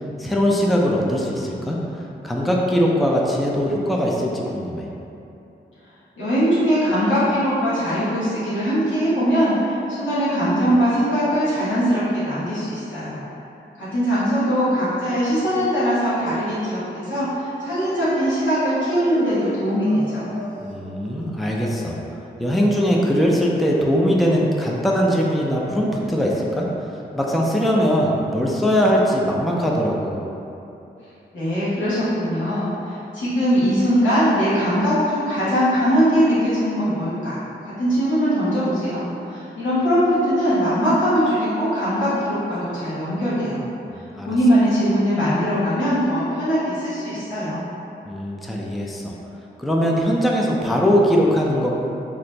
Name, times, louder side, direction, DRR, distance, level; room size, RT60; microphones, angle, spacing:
voice 1, 0.2-4.8 20.6-22.0 22.4-30.3 43.9-44.3 48.1-49.2 49.6-51.8, equal, ahead, -3 dB, 0.4 m, -21 dB
voice 2, 6.2-13.2 13.8-20.3 31.3-37.4 37.6-43.6 44.3-47.6, equal, 90° left, -12 dB, 1.3 m, -21 dB
sound 1, 17.5-22.1, right 1 dB, 80° right, 0.6 m, -37 dB
2.8 x 2.5 x 3.2 m, 2.8 s
cardioid pair, 50°, 19 cm